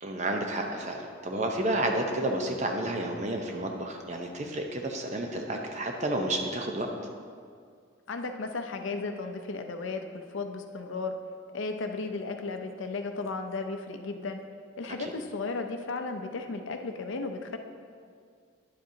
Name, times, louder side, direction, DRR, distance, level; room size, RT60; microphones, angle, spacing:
voice 1, 0.0-6.9 15.0-15.1, right 1 dB, 35° right, 3 dB, 0.7 m, -31 dB
voice 2, 8.1-11.1 11.5-14.4 14.8-17.6, left 3 dB, 70° left, 5 dB, 0.5 m, -35 dB
10.0 x 7.7 x 2.7 m, 2.1 s
head